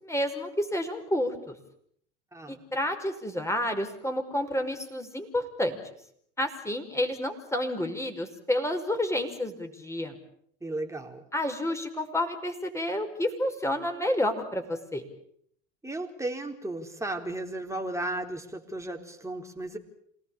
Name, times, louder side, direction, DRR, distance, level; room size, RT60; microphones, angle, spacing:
voice 1, 0.0-1.5 2.5-5.8 6.4-10.2 11.3-15.0, left 1 dB, 5° left, 5 dB, 5.5 m, -30 dB
voice 2, 2.3-2.6 10.6-11.2 15.8-19.8, right 2 dB, 10° right, 3 dB, 4.3 m, -35 dB
27.5 x 19.0 x 8.8 m, 0.66 s
hypercardioid pair, 80°, 37 cm